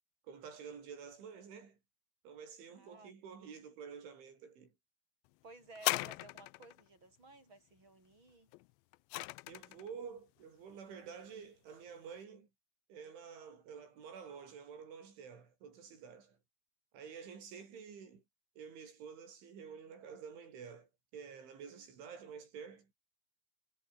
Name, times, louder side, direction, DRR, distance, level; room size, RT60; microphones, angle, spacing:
voice 1, 0.2-1.8 2.2-4.7 9.5-12.5 12.9-16.4 16.9-18.2 18.6-22.9, right 6 dB, 90° right, 7.7 m, -50 dB
voice 2, 2.7-3.1 5.4-8.5, right 2 dB, 25° right, 7.9 m, -56 dB
sound 1, 5.8-6.8 8.5-9.9 10.7-10.8, left 22 dB, 85° left, 2.7 m, -38 dB
omnidirectional pair, 5.3 m